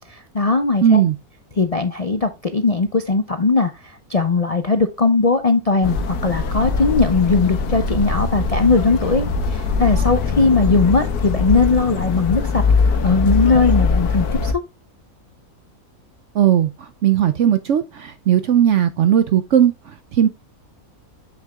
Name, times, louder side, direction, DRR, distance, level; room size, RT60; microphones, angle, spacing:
voice 1, 0.1-1.0 1.6-12.6 13.0-14.5, left 3 dB, 60° left, 0.4 m, -19 dB
voice 2, 0.8-1.1 16.3-20.3, right 10 dB, 65° right, 0.8 m, -17 dB
sound 1, 5.8-14.5, left 4 dB, 85° left, 1.5 m, -21 dB
8.2 x 6.5 x 2.3 m
omnidirectional pair, 1.6 m